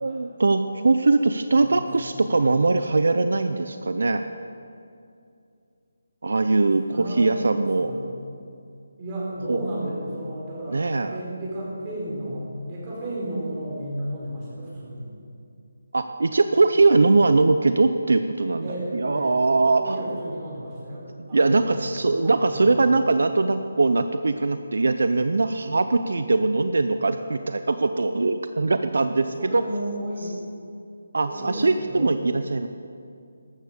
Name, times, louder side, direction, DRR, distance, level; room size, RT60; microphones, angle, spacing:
voice 1, 0.0-4.2 6.2-7.9 9.5-9.6 10.7-11.2 15.9-20.0 21.2-29.6 31.1-32.7, right 3 dB, 75° right, 9 dB, 0.6 m, -21 dB
voice 2, 1.5-2.2 6.9-8.0 9.0-15.1 18.6-19.4 19.7-21.0 21.3-21.7 22.2-22.7 28.8-29.0 29.4-30.4 31.2-32.2, right 1 dB, 20° right, -6 dB, 4.4 m, -33 dB
14.0 x 13.0 x 5.2 m, 2.4 s
hypercardioid pair, 170°, 0 cm